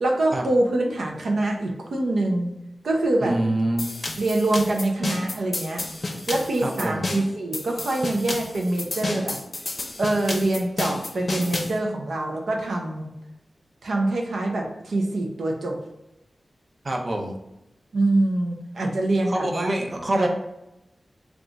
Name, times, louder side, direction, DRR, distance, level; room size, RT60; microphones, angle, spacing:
voice 1, 0.0-2.5 2.8-3.4 4.2-5.8 6.3-9.4 10.0-13.1 13.8-15.8 17.9-19.7 20.2-20.3, right 2 dB, 85° right, 0 dB, 0.7 m, -24 dB
voice 2, 3.2-4.0 6.6-7.1 16.8-17.3 19.3-20.3, right 1 dB, 40° right, 1 dB, 0.6 m, -25 dB
sound 1, 3.8-11.8, left 2 dB, 50° left, 0.6 m, -31 dB
3.6 x 2.4 x 3.8 m, 0.92 s
wide cardioid pair, 85°, 0 cm